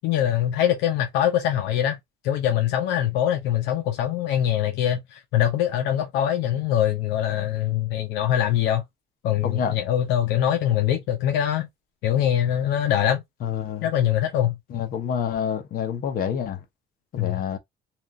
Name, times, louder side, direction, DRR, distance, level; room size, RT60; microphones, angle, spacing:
voice 1, 0.0-2.0 2.2-8.8 9.2-11.7 12.0-13.2 13.8-14.6 17.2-17.4, left 11 dB, 90° left, 0.6 m, -23 dB
voice 2, 9.4-9.8 13.4-13.9 14.7-16.6 17.1-17.6, left 7 dB, 60° left, 0.9 m, -27 dB
2.9 x 2.5 x 2.5 m
cardioid pair, 110°, 17 cm